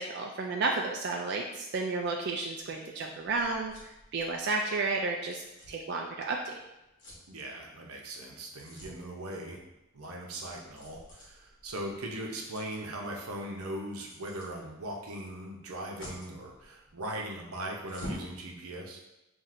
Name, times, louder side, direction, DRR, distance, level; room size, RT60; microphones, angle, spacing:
voice 1, 0.0-3.7 4.1-6.5, right 3 dB, 50° right, 1 dB, 0.3 m, -32 dB
sound 1, 2.0-18.3, left 1 dB, 55° left, 1.2 m, -51 dB
voice 2, 7.3-9.6 9.9-19.0, right 1 dB, 90° right, 0 dB, 0.7 m, -39 dB
5.7 x 2.6 x 2.5 m, 0.95 s
head